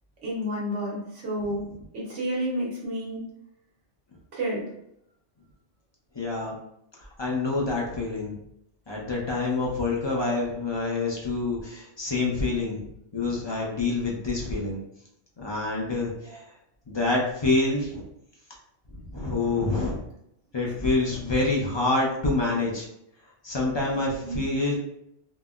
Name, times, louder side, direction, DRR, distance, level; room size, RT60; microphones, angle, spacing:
voice 1, 0.2-1.6 1.9-3.2 4.3-4.7 16.3-16.4 24.2-24.4, equal, 85° right, -4 dB, 1.3 m, -30 dB
voice 2, 6.2-6.5 7.2-8.3 8.9-12.8 13.1-14.8 15.4-16.4 16.9-18.0 19.1-20.0 20.5-22.9 23.4-24.8, left 3 dB, 35° left, -3 dB, 0.4 m, -27 dB
3.8 x 2.0 x 2.4 m, 0.77 s
omnidirectional pair, 1.2 m